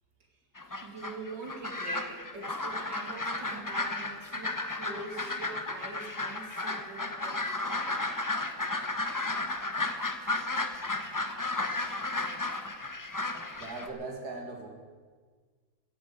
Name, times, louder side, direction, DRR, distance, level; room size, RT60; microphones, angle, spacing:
sound 1, 0.6-13.9, left 2 dB, 25° left, 0.4 m, -33 dB
voice 1, 0.8-8.0, right 2 dB, 90° right, 0 dB, 3.3 m, -44 dB
voice 2, 13.5-14.7, right 3 dB, 65° right, 2 dB, 2.7 m, -39 dB
16.5 x 8.7 x 7.9 m, 1.5 s
omnidirectional pair, 1.9 m